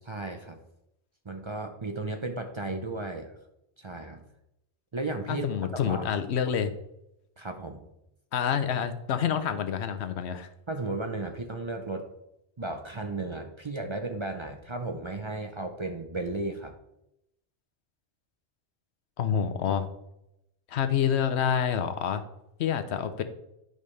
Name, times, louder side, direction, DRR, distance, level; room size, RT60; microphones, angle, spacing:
voice 1, 0.1-0.6 1.2-3.3 3.8-4.2 4.9-5.5 5.8-6.0 7.4-7.8 10.7-12.1 12.6-16.7, right 2 dB, 35° right, 5 dB, 0.6 m, -34 dB
voice 2, 5.3-6.7 8.3-10.5 19.2-19.9 20.7-22.2 22.6-23.2, left 8 dB, 80° left, 10 dB, 1.0 m, -27 dB
11.0 x 5.3 x 3.2 m, 0.84 s
omnidirectional pair, 1.1 m